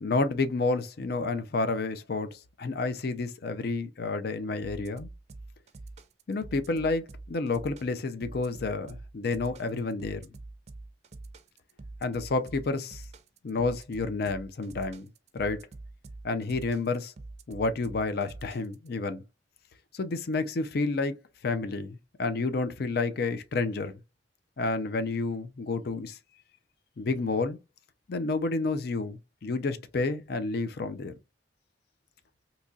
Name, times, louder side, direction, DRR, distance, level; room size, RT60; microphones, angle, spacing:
voice 1, 0.0-5.1 6.3-10.2 12.0-13.0 13.4-15.1 15.3-15.7 16.2-17.1 17.5-19.2 19.9-21.1 21.4-24.0 24.6-26.2 27.0-27.6 28.1-31.1, left 3 dB, 55° left, 0.5 m, -30 dB
sound 1, 4.6-18.9, right 2 dB, 35° right, 0.4 m, -45 dB
4.0 x 2.9 x 2.3 m
head